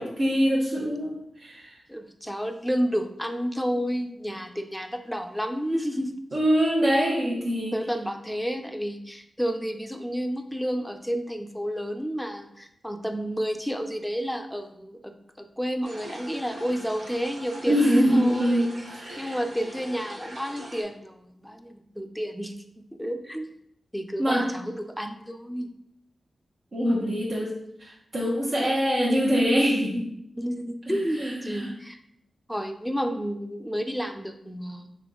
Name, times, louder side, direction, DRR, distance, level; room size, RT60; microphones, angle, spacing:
voice 1, 0.0-1.7 6.3-7.7 17.6-19.4 24.2-24.5 26.7-30.1 30.9-31.7, equal, 65° right, -6 dB, 1.1 m, -24 dB
voice 2, 1.9-6.1 7.7-15.1 15.4-18.7 19.2-23.5 23.9-25.7 30.4-32.0 32.5-35.0, equal, ahead, 6 dB, 0.5 m, -31 dB
sound 1, 15.8-20.8, equal, 85° right, 1.1 m, -42 dB
3.3 x 3.1 x 3.8 m, 0.74 s
cardioid pair, 40°, 0 cm